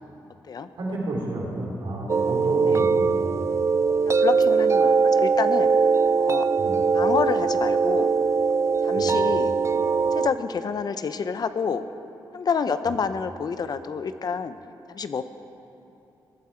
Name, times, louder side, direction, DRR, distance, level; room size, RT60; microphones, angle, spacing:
voice 1, 0.8-3.3 6.6-6.8 8.9-9.1, right 1 dB, 75° right, -4 dB, 3.9 m, -31 dB
sound 1, 2.1-10.3, right 5 dB, 35° right, 0.3 m, -21 dB
voice 2, 4.0-5.7 6.2-6.4 6.9-8.1 8.8-9.5 10.1-11.9 12.3-14.6 14.9-15.2, left 5 dB, 55° left, 11 dB, 0.6 m, -28 dB
19.5 x 11.5 x 4.4 m, 3.0 s
cardioid pair, 80°, 8 cm